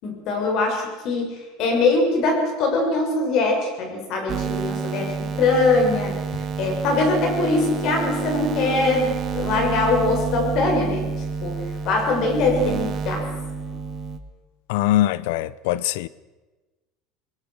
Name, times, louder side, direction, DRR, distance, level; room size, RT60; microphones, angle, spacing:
voice 1, 0.0-6.1 6.6-11.1 11.4-13.3, left 3 dB, 55° left, 6.7 m, -22 dB
sound 1, 4.3-14.2, right 5 dB, 35° right, 1.9 m, -29 dB
voice 2, 14.7-16.1, left 14 dB, 80° left, 0.7 m, -22 dB
21.5 x 21.0 x 6.6 m
cardioid pair, 140°, 0 cm